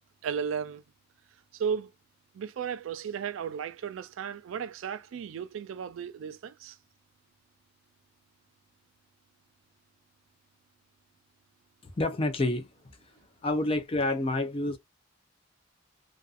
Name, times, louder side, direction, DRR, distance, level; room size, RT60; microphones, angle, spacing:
voice 1, 0.2-0.8 1.5-1.9 2.3-6.8, right 7 dB, 90° right, 0.3 m, -34 dB
voice 2, 11.8-12.7 13.4-14.8, left 2 dB, 30° left, 0.5 m, -28 dB
2.5 x 2.3 x 2.4 m
head